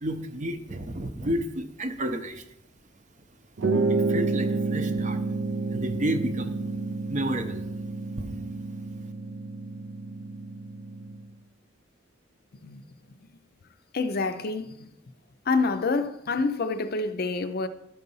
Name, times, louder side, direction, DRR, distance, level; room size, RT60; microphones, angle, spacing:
voice 1, 0.0-2.4 3.9-5.2 5.7-6.6 7.1-7.6 8.2-8.3, right 1 dB, 40° right, 0.7 m, -31 dB
sound 1, 3.6-11.3, right 3 dB, 80° right, 0.6 m, -29 dB
voice 2, 12.5-13.2 13.9-15.0 15.4-17.7, left 3 dB, 50° left, 0.5 m, -28 dB
11.5 x 4.0 x 5.4 m
head